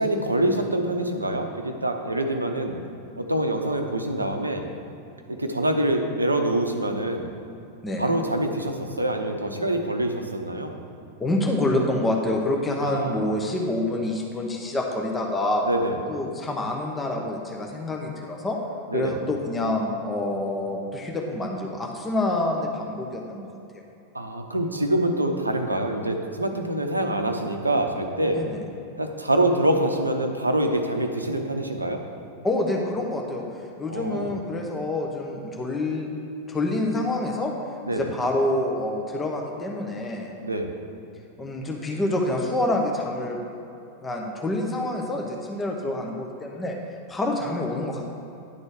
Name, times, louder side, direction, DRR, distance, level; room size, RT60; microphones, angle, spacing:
voice 1, 0.0-2.8 3.2-4.7 5.3-7.3 8.0-10.8 12.8-13.2 15.7-16.0 18.9-19.2 24.1-28.4 29.0-32.0 33.9-34.3 37.9-38.1 40.4-40.7, right 1 dB, 80° right, 5 dB, 0.8 m, -25 dB
voice 2, 7.8-8.2 11.2-15.6 16.1-18.6 18.9-23.5 28.3-28.5 32.4-33.4 33.8-36.1 36.5-37.5 37.9-40.3 41.4-43.4 44.0-46.8 47.1-48.1, left 1 dB, 15° left, 0 dB, 1.0 m, -27 dB
10.5 x 4.3 x 6.7 m, 2.7 s
figure-of-eight pair, 90°, 0 cm